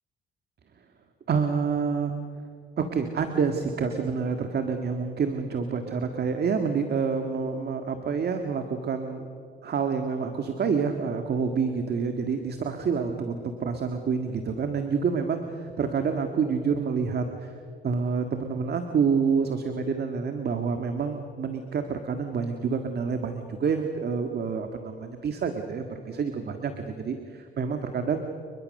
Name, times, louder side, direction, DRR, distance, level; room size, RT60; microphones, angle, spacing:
voice 1, 1.3-2.1 2.8-9.3 9.6-17.5 17.8-28.2, right 5 dB, 55° right, 6 dB, 1.9 m, -28 dB
29.5 x 22.0 x 6.6 m, 2.4 s
cardioid pair, 90°, 20 cm